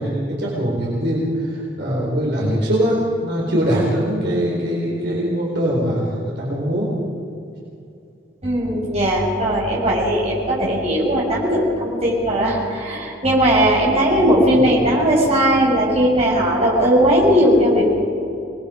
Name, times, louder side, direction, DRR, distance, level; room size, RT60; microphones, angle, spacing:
voice 1, 0.0-6.9 14.5-14.7, equal, 60° right, -4 dB, 4.5 m, -22 dB
voice 2, 8.4-18.0, equal, 30° right, -4 dB, 6.6 m, -18 dB
28.0 x 20.5 x 5.2 m, 2.6 s
head